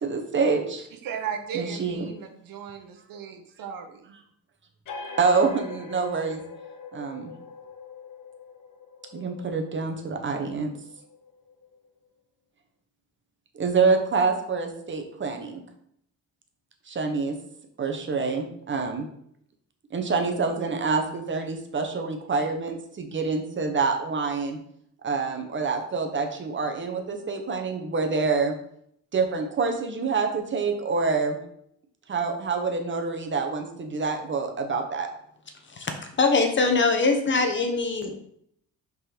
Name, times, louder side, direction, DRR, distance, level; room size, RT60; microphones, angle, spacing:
voice 1, 0.0-0.8 1.5-2.1 5.2-6.4 6.9-7.3 9.1-10.7 13.5-15.6 16.9-17.3 17.8-19.1 19.9-24.6 25.0-28.5 29.1-31.4 32.1-35.1, right 4 dB, 35° right, 4 dB, 1.0 m, -26 dB
voice 2, 0.8-4.2, right 8 dB, 80° right, 5 dB, 1.1 m, -36 dB
sound 1, 4.8-12.1, left 5 dB, 65° left, 0.9 m, -44 dB
voice 3, 35.7-38.2, left 3 dB, 35° left, 5 dB, 0.9 m, -23 dB
5.3 x 4.0 x 5.1 m, 0.70 s
cardioid pair, 135°, 34 cm